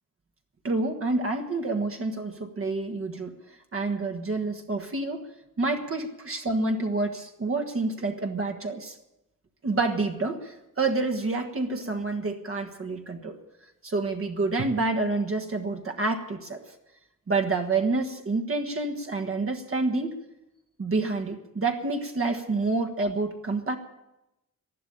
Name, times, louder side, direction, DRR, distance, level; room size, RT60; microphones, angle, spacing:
voice 1, 0.6-3.3 3.7-5.2 5.6-9.0 9.6-13.4 13.8-16.6 17.3-20.2 20.8-23.8, right 3 dB, 40° right, 5 dB, 1.5 m, -28 dB
13.0 x 11.5 x 8.8 m, 0.91 s
wide cardioid pair, 135°, 34 cm